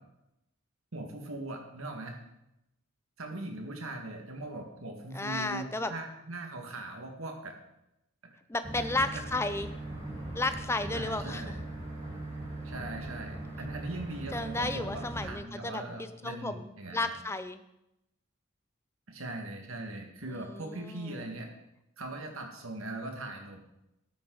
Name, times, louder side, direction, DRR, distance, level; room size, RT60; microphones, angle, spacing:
voice 1, 0.9-2.2 3.2-7.6 8.2-8.3 10.9-11.6 12.6-17.1 19.1-21.5 22.0-23.6, right 2 dB, 75° right, 3 dB, 1.9 m, -40 dB
voice 2, 5.1-5.9 8.5-9.7 10.3-11.6 14.3-17.6 20.3-21.3, left 2 dB, 10° left, 10 dB, 0.5 m, -33 dB
sound 1, 8.6-15.3, right 2 dB, 30° right, 3.9 m, -40 dB
12.5 x 9.4 x 4.0 m, 0.87 s
head